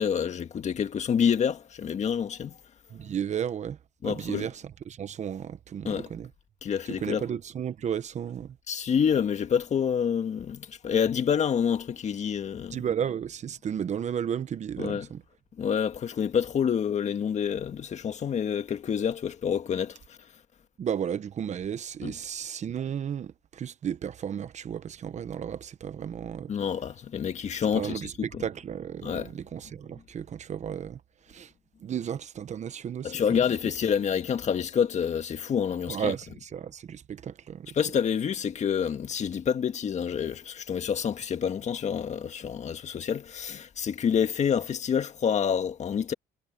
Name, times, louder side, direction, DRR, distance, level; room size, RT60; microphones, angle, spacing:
voice 1, 0.0-2.6 4.0-4.5 5.8-6.1 6.6-7.2 8.7-12.8 14.8-15.1 15.6-20.2 22.0-22.1 26.5-28.0 28.3-28.4 29.0-29.3 33.0-36.1 37.7-46.1, left 7 dB, 45° left, 1.8 m, -28 dB
voice 2, 2.9-3.8 4.0-6.3 6.8-8.6 12.7-15.2 20.8-26.5 27.7-31.0 31.3-31.5 31.8-33.4 35.9-37.7, right 8 dB, 45° right, 1.0 m, -33 dB
cardioid pair, 110°, 17 cm